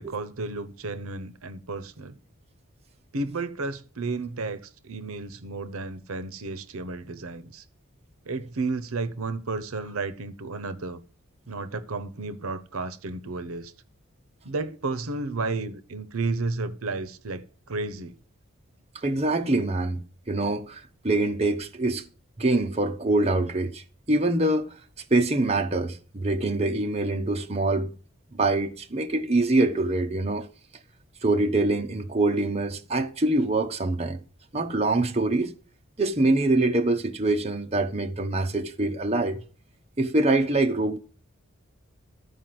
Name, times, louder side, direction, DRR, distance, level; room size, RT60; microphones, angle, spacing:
voice 1, 0.0-2.2 3.1-7.6 8.2-11.0 11.5-13.7 14.4-18.2, right 3 dB, 80° right, 0.8 m, -32 dB
voice 2, 19.0-22.0 22.4-24.7 25.1-27.9 28.3-30.5 31.2-34.2 34.5-35.5 36.0-39.4 40.0-41.0, right 2 dB, 30° right, 1.0 m, -24 dB
13.0 x 4.8 x 7.7 m
head